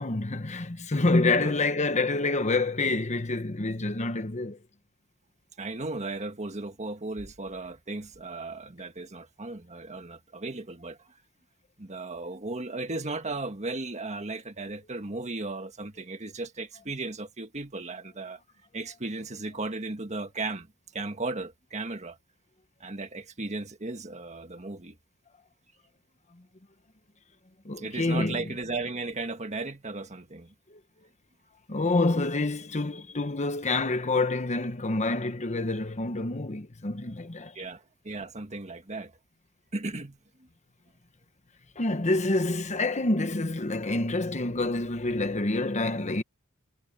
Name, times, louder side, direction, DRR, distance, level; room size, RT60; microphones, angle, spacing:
voice 1, 0.0-4.6 27.6-28.4 30.7-30.8 31.7-37.6 41.8-46.2, left 2 dB, 30° left, 1.1 m, -27 dB
voice 2, 5.6-11.0 11.8-18.4 18.7-20.7 20.9-22.2 22.8-24.9 27.8-30.5 37.6-39.1 39.7-40.2, right 3 dB, 30° right, 1.8 m, -36 dB
head